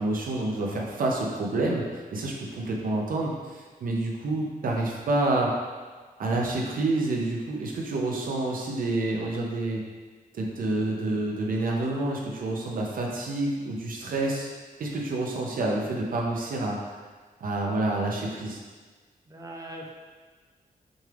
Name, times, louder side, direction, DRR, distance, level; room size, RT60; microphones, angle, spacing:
voice 1, 0.0-5.5 6.2-9.8 10.3-14.5 14.8-17.0 17.4-18.6, right 2 dB, 70° right, -1 dB, 0.7 m, -28 dB
voice 2, 19.3-19.9, right 1 dB, 25° right, 0 dB, 0.6 m, -41 dB
6.1 x 3.4 x 2.4 m, 1.4 s
wide cardioid pair, 120°, 15 cm